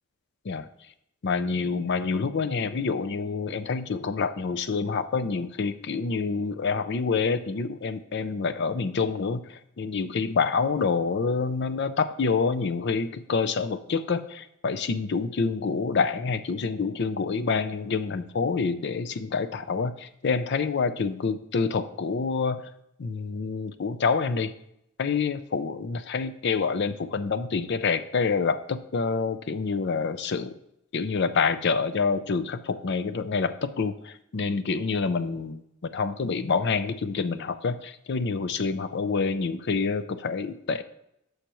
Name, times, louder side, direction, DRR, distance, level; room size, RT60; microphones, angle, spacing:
voice 1, 1.2-22.6 23.0-24.5 25.0-30.5 30.9-40.8, left 5 dB, 55° left, 12 dB, 0.5 m, -27 dB
11.5 x 6.5 x 3.0 m, 0.79 s
head